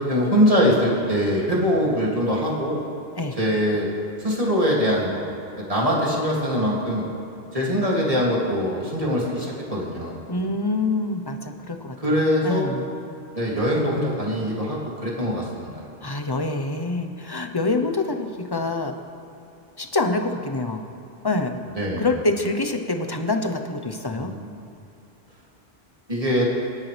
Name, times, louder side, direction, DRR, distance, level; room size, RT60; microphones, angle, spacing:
voice 1, 0.1-2.8 3.4-3.9 4.2-5.2 5.6-7.0 7.5-10.1 12.0-12.7 13.3-15.8 21.7-22.1 24.1-24.4 26.1-26.4, equal, 35° right, -4 dB, 2.8 m, -22 dB
voice 2, 10.3-12.8 16.0-18.9 19.8-20.8 21.2-21.7 22.0-24.3, left 2 dB, 25° left, 5 dB, 0.9 m, -26 dB
26.0 x 10.5 x 3.5 m, 2.8 s
omnidirectional pair, 1.0 m